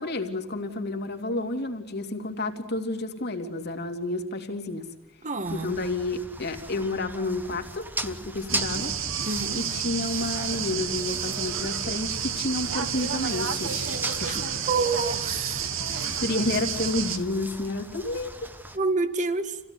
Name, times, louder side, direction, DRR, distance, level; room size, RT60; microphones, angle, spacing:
voice 1, 0.0-4.9 5.5-8.9 9.5-14.5 15.9-18.3, left 2 dB, 55° left, 4 dB, 2.9 m, -30 dB
voice 2, 5.2-5.8 9.2-9.6 14.2-15.7 18.7-19.6, right 3 dB, 40° right, 10 dB, 1.7 m, -28 dB
sound 1, 5.4-18.8, right 2 dB, 10° right, 1.1 m, -39 dB
sound 2, 8.5-17.2, right 7 dB, 90° right, 1.8 m, -30 dB
28.5 x 17.0 x 9.8 m, 1.0 s
head